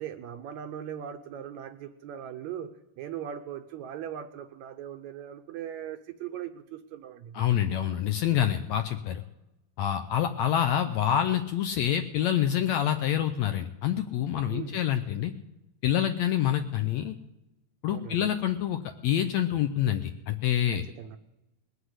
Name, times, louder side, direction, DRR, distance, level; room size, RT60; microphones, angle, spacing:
voice 1, 0.0-7.5 14.5-14.8 17.9-18.3 20.7-21.2, right 9 dB, 75° right, 7 dB, 1.8 m, -39 dB
voice 2, 7.3-9.2 9.8-15.3 15.8-17.1 17.8-20.8, left 10 dB, 75° left, 7 dB, 1.6 m, -27 dB
20.0 x 8.0 x 8.0 m, 0.98 s
omnidirectional pair, 3.8 m